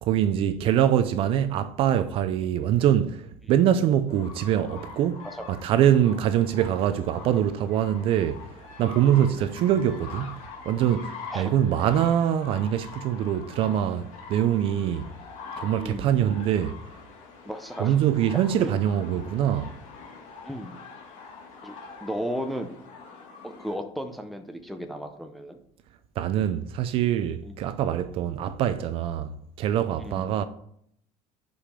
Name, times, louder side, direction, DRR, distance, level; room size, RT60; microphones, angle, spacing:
voice 1, 0.0-5.2 5.5-8.5 8.8-10.4 10.7-15.1 15.6-16.8 17.8-19.7 26.2-30.4, right 10 dB, 45° right, 0.4 m, -24 dB
sound 1, 4.1-23.8, left 4 dB, 65° left, 1.8 m, -44 dB
voice 2, 15.8-16.1 17.5-17.9 18.6-18.7 20.4-20.8 21.6-22.7 23.4-25.6 27.4-27.6 30.0-30.3, equal, ahead, 0.6 m, -35 dB
5.2 x 4.9 x 5.7 m
cardioid pair, 170°, 13 cm